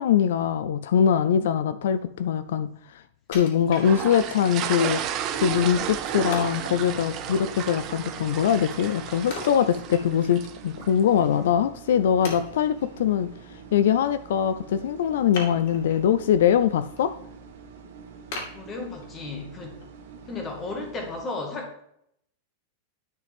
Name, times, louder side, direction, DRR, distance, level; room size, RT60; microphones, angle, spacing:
voice 1, 0.0-3.0 3.3-5.0 5.4-13.3 13.7-17.1, left 8 dB, 75° left, 13 dB, 0.4 m, -22 dB
Wood, 3.3-4.4 4.9-5.0 6.3-6.7 9.3-10.4 10.8-10.9 11.5-11.6 12.2-12.9 15.3-16.1 16.5-17.0 17.4-17.5 18.3-19.3 19.8-19.9, left 3 dB, 55° left, 2.5 m, -38 dB
sound 1, 3.7-11.0, right 10 dB, 30° right, 0.7 m, -33 dB
sound 2, 4.8-21.2, right 5 dB, 80° right, 1.8 m, -45 dB
voice 2, 18.5-19.8 20.3-21.9, left 3 dB, 20° left, 3 dB, 1.7 m, -34 dB
10.5 x 5.8 x 3.5 m, 0.72 s
supercardioid pair, 170°, 0 cm